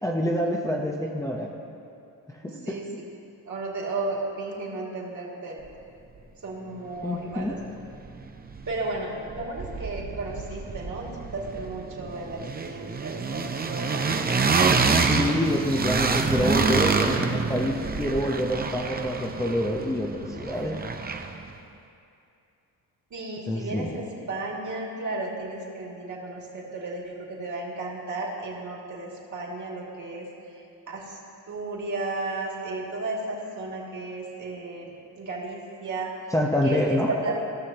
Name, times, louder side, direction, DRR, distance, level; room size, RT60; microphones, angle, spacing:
voice 1, 0.0-1.5 2.3-2.4 2.7-2.8 7.0-7.6 15.1-20.8 23.5-23.9 36.3-37.1, left 1 dB, 10° left, -2 dB, 0.8 m, -26 dB
voice 2, 2.4-2.8 3.4-5.6 6.4-7.6 8.7-14.3 23.1-31.2 31.5-36.1 36.6-37.4, right 2 dB, 50° right, -4 dB, 2.4 m, -34 dB
sound 1, 7.5-7.6 7.9-9.0 9.3-21.5, right 4 dB, 25° right, 0.6 m, -27 dB
16.5 x 6.2 x 3.0 m, 2.6 s
cardioid pair, 70°, 39 cm